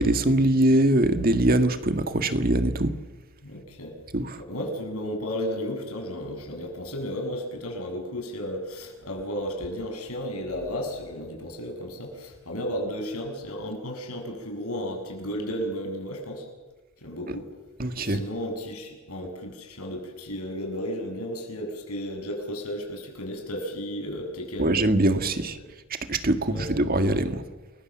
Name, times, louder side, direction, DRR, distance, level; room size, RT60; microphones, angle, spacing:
voice 1, 0.0-2.9 4.1-4.4 17.3-17.4 17.8-18.2 24.6-25.6 25.9-27.4, right 1 dB, 40° right, 8 dB, 1.7 m, -22 dB
voice 2, 3.4-3.9 4.5-16.5 17.0-17.5 18.0-24.7 26.5-26.7, equal, 85° left, 3 dB, 7.0 m, -33 dB
29.0 x 22.0 x 7.4 m, 1.2 s
head